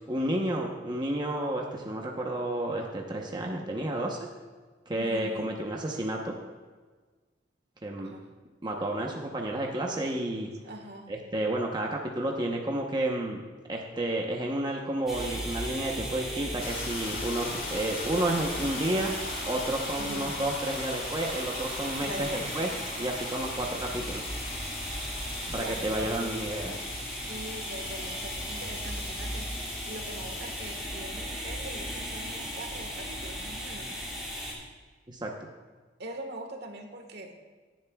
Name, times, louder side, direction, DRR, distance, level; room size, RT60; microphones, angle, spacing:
voice 1, 0.1-4.3 4.9-6.3 7.8-8.1 8.6-10.5 11.1-13.4 13.7-19.1 19.5-22.7 23.0-24.3 25.5-26.8 35.1-35.3, right 1 dB, 25° right, 0 dB, 0.9 m, -31 dB
voice 2, 4.9-5.5 8.0-8.3 8.6-9.0 10.6-11.1 20.0-20.4 22.0-22.5 25.5-26.3 27.3-34.0 36.0-37.3, right 1 dB, 65° right, 4 dB, 1.5 m, -43 dB
sound 1, 15.1-34.5, equal, ahead, 3.9 m, -37 dB
sound 2, 16.6-30.9, left 4 dB, 50° left, 1.8 m, -41 dB
17.0 x 10.5 x 2.3 m, 1.4 s
head